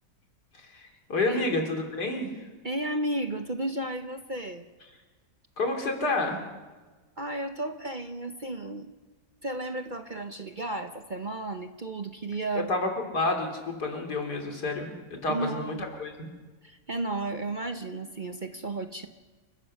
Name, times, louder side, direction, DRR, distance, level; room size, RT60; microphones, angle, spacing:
voice 1, 0.6-2.3 5.6-6.4 12.7-16.3, left 2 dB, 80° left, 2 dB, 3.6 m, -29 dB
voice 2, 2.6-4.7 7.2-8.9 9.4-12.7 15.3-15.8 16.6-19.1, right 2 dB, 35° right, 7 dB, 0.9 m, -33 dB
29.0 x 15.5 x 6.5 m, 1.3 s
omnidirectional pair, 1.7 m